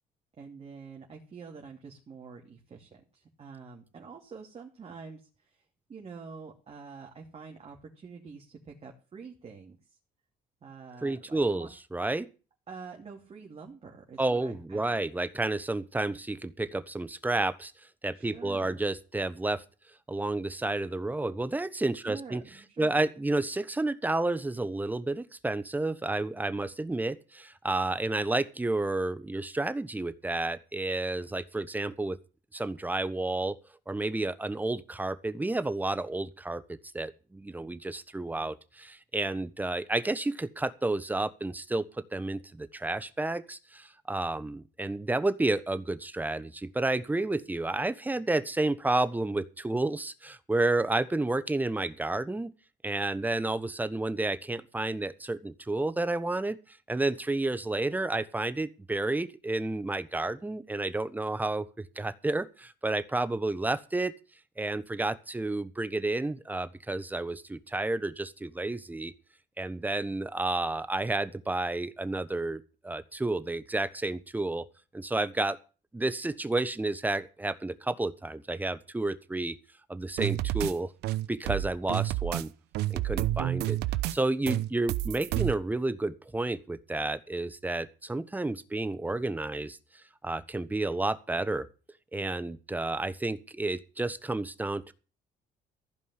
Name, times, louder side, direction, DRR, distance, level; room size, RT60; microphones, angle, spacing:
voice 1, 0.4-5.6 5.9-10.0 10.6-11.7 12.7-15.0 18.1-18.8 22.0-23.0, right 5 dB, 35° right, 1 dB, 2.8 m, -46 dB
voice 2, 11.0-12.3 14.2-17.7 18.0-19.6 20.1-22.4 22.8-32.2 32.5-33.5 33.9-52.5 52.8-64.1 64.6-69.1 69.6-74.6 74.9-75.6 75.9-79.6 79.9-80.9 81.3-82.5 82.9-83.8 84.1-89.8 90.2-91.7 92.1-94.9, right 2 dB, 10° right, 14 dB, 1.1 m, -31 dB
sound 1, 80.2-80.7 81.0-82.4 82.7-84.2 84.5-85.5, right 14 dB, 80° right, 0.9 m, -29 dB
15.0 x 5.4 x 9.7 m, 0.34 s
cardioid pair, 110°, 17 cm